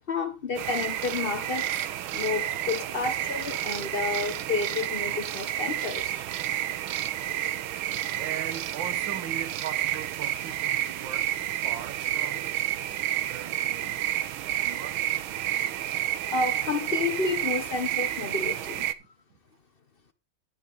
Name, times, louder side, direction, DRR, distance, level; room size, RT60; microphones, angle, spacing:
voice 1, 0.1-1.9 2.1-6.3 16.3-18.8, left 4 dB, 40° left, 0.8 m, -30 dB
sound 1, 0.6-18.9, right 12 dB, 80° right, 1.6 m, -30 dB
voice 2, 8.2-11.4 11.6-12.5 13.2-14.1 14.5-15.0, right 9 dB, 65° right, 1.8 m, -39 dB
12.0 x 8.4 x 4.1 m
omnidirectional pair, 2.3 m